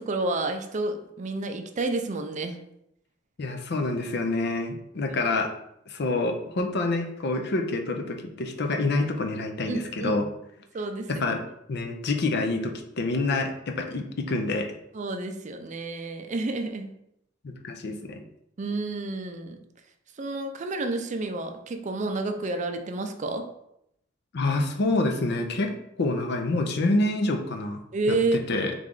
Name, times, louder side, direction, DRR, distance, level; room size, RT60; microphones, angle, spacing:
voice 1, 0.0-2.6 5.1-5.2 9.7-10.1 10.7-11.2 14.9-16.9 18.6-19.6 20.2-23.4 27.9-28.4, right 2 dB, 40° right, 6 dB, 0.4 m, -30 dB
voice 2, 3.4-5.5 5.9-10.3 11.1-11.4 11.7-14.7 17.4-18.2 24.3-25.7 26.0-27.8 28.1-28.7, left 2 dB, 60° left, 5 dB, 0.5 m, -27 dB
3.6 x 3.2 x 3.7 m, 0.78 s
head